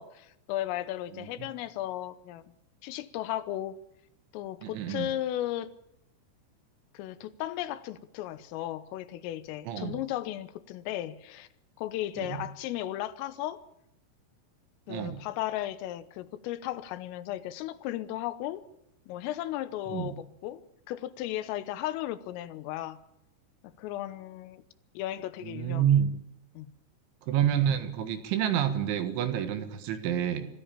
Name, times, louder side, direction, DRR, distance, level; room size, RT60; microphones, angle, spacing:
voice 1, 0.0-2.4 2.8-3.8 4.3-5.7 7.0-11.5 11.8-13.6 14.9-18.6 19.1-20.6 20.9-23.0 23.8-24.6 25.0-25.9 26.6-26.7, left 13 dB, 85° left, 14 dB, 3.6 m, -35 dB
voice 2, 1.1-1.5 4.6-5.1 9.7-10.0 12.2-12.5 14.9-15.2 19.9-20.2 25.4-26.1 27.2-30.4, right 10 dB, 70° right, 10 dB, 3.7 m, -28 dB
23.5 x 14.5 x 8.9 m, 0.80 s
omnidirectional pair, 5.9 m